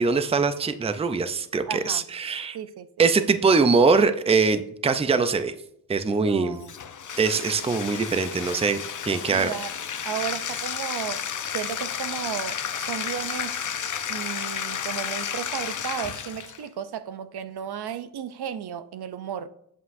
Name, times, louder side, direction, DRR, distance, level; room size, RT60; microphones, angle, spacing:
voice 1, 0.0-2.6 3.0-5.5 5.9-6.6 7.2-9.5, right 4 dB, 15° right, 0.5 m, -22 dB
voice 2, 1.7-2.0 2.5-2.9 6.2-6.7 9.3-9.7 10.0-11.2 11.5-13.7 14.1-19.5, right 9 dB, 70° right, 0.6 m, -34 dB
Bathtub (filling or washing), 6.6-16.6, left 8 dB, 50° left, 0.6 m, -32 dB
8.5 x 7.4 x 2.6 m
wide cardioid pair, 105°, 40 cm